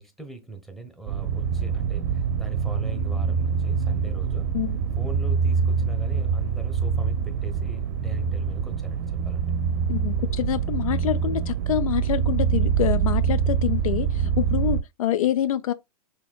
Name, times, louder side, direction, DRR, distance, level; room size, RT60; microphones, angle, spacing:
voice 1, 0.0-4.5 5.0-9.5, right 2 dB, ahead, 1.2 m, -40 dB
sound 1, 1.1-14.8, right 7 dB, 40° right, 0.7 m, -25 dB
voice 2, 9.9-15.7, left 11 dB, 65° left, 0.5 m, -26 dB
5.9 x 2.8 x 2.3 m
hypercardioid pair, 115°, 19 cm